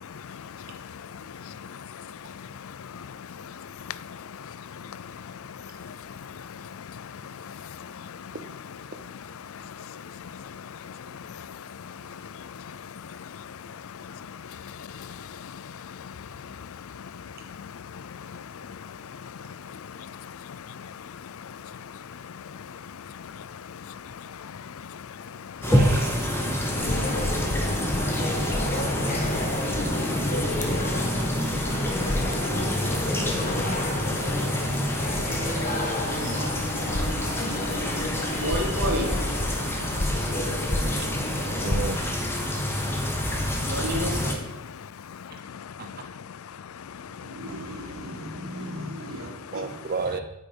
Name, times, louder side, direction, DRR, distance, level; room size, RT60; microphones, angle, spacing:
voice 1, 0.0-8.4 9.4-25.7 26.6-36.2 36.7-38.4 39.5-41.0 41.5-41.7 42.4-43.7 44.8-45.6 47.0-47.4, left 7 dB, 65° left, 0.5 m, -41 dB
sound 1, 25.6-44.4, equal, 10° left, 1.7 m, -28 dB
voice 2, 25.6-26.2 39.9-40.0 41.5-42.0 49.5-50.2, right 4 dB, 45° right, 0.7 m, -32 dB
sound 2, 26.7-41.8, left 1 dB, 35° left, 1.6 m, -30 dB
voice 3, 36.0-39.7 43.6-44.4 47.1-49.7, equal, 70° right, 3.8 m, -34 dB
10.0 x 10.0 x 5.3 m
head